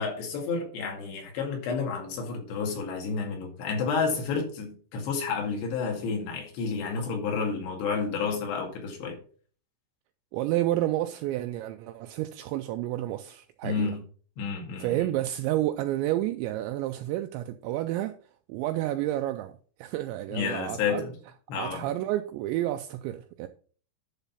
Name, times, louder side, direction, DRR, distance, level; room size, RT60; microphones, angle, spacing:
voice 1, 0.0-9.2 13.6-14.0 14.4-15.1 20.3-21.1 21.5-21.9, left 5 dB, 65° left, 4.0 m, -30 dB
voice 2, 10.3-13.9 14.8-18.2 18.5-19.5 19.8-21.0 21.5-23.5, right 14 dB, 90° right, 2.5 m, -30 dB
11.0 x 4.0 x 5.5 m
omnidirectional pair, 5.7 m